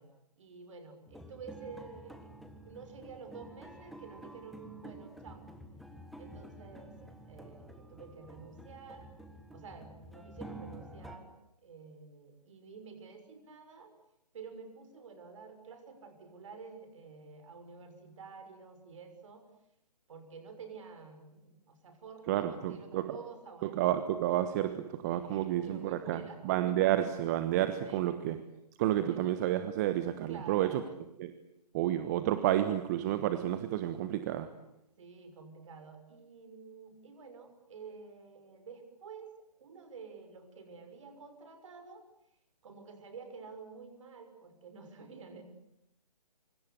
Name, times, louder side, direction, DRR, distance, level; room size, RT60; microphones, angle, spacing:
voice 1, 0.0-2.3 2.6-5.4 6.2-9.1 9.5-11.3 11.6-13.9 14.3-19.5 20.1-23.8 25.1-26.8 27.8-28.1 29.0-29.3 30.3-30.9 35.0-39.3 39.6-42.1 42.6-45.4, right 5 dB, 50° right, 8 dB, 6.4 m, -50 dB
sound 1, 1.1-11.2, right 1 dB, ahead, 1.6 m, -50 dB
voice 2, 22.3-23.2 23.6-28.4 28.8-30.8 31.2-31.3 31.7-34.5, right 12 dB, 25° right, 11 dB, 1.3 m, -30 dB
25.5 x 25.0 x 8.4 m, 0.82 s
figure-of-eight pair, 145°, 21 cm